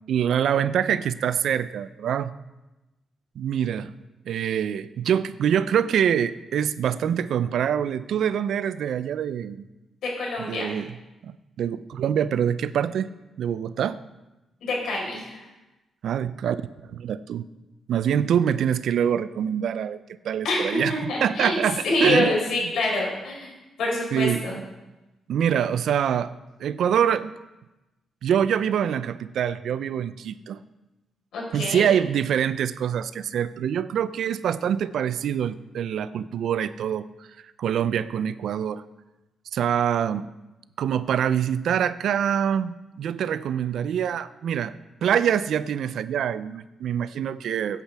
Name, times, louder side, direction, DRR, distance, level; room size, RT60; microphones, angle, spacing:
voice 1, 0.1-2.3 3.4-3.9 4.3-9.6 10.4-11.0 11.2-11.3 11.6-13.1 13.4-14.0 16.0-17.4 17.9-20.0 20.2-22.4 24.1-24.5 25.3-26.3 26.6-27.3 28.2-30.6 31.5-37.1 37.6-38.8 39.5-40.3 40.8-44.7 45.0-47.8, right 9 dB, 75° right, 15 dB, 0.4 m, -25 dB
voice 2, 10.0-10.8 14.6-15.4 20.4-21.6 21.8-23.5 23.8-24.6 31.3-31.9, left 2 dB, 75° left, -2 dB, 4.2 m, -26 dB
16.0 x 8.4 x 3.4 m, 1.0 s
cardioid pair, 125°, 0 cm